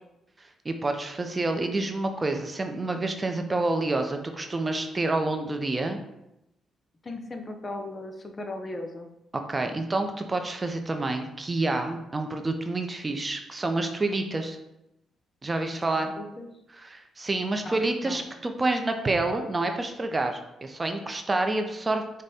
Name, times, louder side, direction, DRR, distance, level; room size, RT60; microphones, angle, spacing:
voice 1, 0.6-6.0 9.5-14.6 15.4-16.1 16.7-22.2, right 2 dB, 30° right, 5 dB, 0.5 m, -28 dB
voice 2, 7.0-9.1 16.2-16.5 17.6-18.2, left 2 dB, 40° left, 5 dB, 0.6 m, -37 dB
5.0 x 2.1 x 4.1 m, 0.86 s
supercardioid pair, 65°, 0 cm